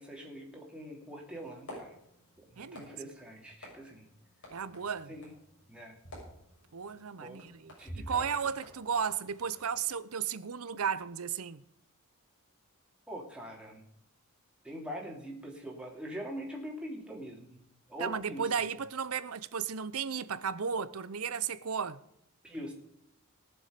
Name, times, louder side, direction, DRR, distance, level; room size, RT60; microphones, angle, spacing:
voice 1, 0.0-2.0 2.4-4.1 5.1-5.3 5.7-5.9 7.2-7.4 7.8-8.3 13.1-13.8 14.6-17.6 17.9-18.5 22.4-22.7, equal, 5° right, 2.8 m, -43 dB
sound 1, 1.3-9.9, equal, 55° left, 6.5 m, -51 dB
voice 2, 2.6-3.0 4.5-5.1 6.7-11.6 18.0-22.0, right 6 dB, 75° right, 0.7 m, -34 dB
19.0 x 7.2 x 5.1 m
head